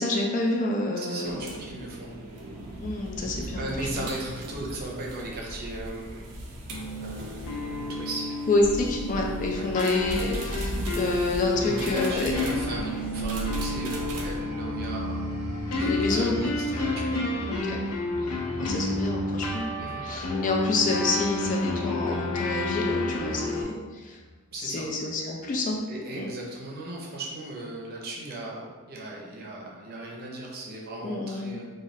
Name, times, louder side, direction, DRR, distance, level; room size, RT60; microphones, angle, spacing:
voice 1, 0.0-1.6 2.8-4.1 8.5-12.3 15.9-16.5 17.5-17.8 18.2-19.7 20.0-24.2 24.6-25.8 26.2-26.3 31.0-31.6, left 2 dB, 35° left, 1 dB, 0.3 m, -28 dB
voice 2, 1.0-2.1 3.5-6.3 7.0-7.5 7.9-8.3 9.6-9.7 11.6-15.2 15.7-17.2 19.8-20.0 24.5-24.9 25.9-31.7, right 2 dB, 45° right, -2 dB, 0.6 m, -37 dB
sound 1, 1.2-14.4, right 1 dB, 90° right, 0.6 m, -37 dB
sound 2, 6.7-23.6, left 2 dB, 90° left, 0.5 m, -30 dB
sound 3, 14.0-24.4 24.8-25.1, left 1 dB, 15° right, 0.9 m, -40 dB
2.7 x 2.3 x 3.1 m, 1.4 s
head